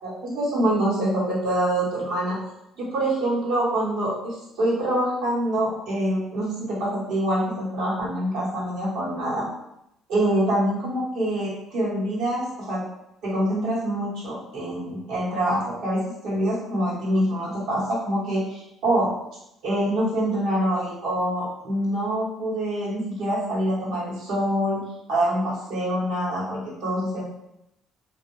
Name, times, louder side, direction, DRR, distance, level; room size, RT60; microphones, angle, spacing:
voice 1, 0.0-2.4 2.8-9.5 10.1-12.8 13.2-19.1 19.6-24.8 25.1-27.2, right 1 dB, 80° right, -8 dB, 1.4 m, -25 dB
2.7 x 2.1 x 3.1 m, 0.84 s
supercardioid pair, 75°, 0 cm